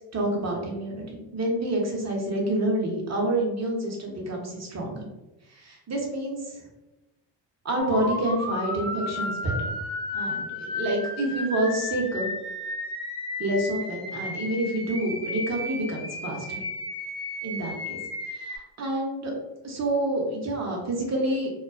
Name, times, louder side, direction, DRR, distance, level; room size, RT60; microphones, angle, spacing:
voice 1, 0.0-5.1 5.5-6.6 7.6-9.5 10.1-12.3 13.4-16.6 17.4-18.0 18.3-19.3 19.6-21.5, right 1 dB, 35° right, -1 dB, 0.8 m, -28 dB
sound 1, 7.8-18.6, left 2 dB, 10° left, 0.5 m, -33 dB
2.3 x 2.3 x 2.3 m, 1.0 s
supercardioid pair, 70°, 48 cm